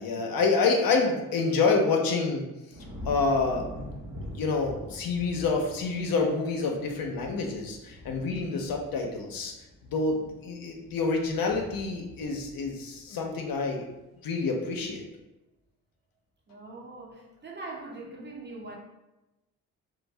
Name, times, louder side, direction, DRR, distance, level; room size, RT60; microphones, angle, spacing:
voice 1, 0.0-2.4 3.1-3.6 4.3-9.5 9.9-13.8 14.2-15.0, left 4 dB, 60° left, 2 dB, 0.6 m, -27 dB
sound 1, 2.7-14.0 14.4-14.9, left 1 dB, 50° right, 0.9 m, -45 dB
voice 2, 16.5-18.8, right 2 dB, 25° right, -1 dB, 0.7 m, -42 dB
2.5 x 2.0 x 3.1 m, 0.98 s
hypercardioid pair, 45°, 41 cm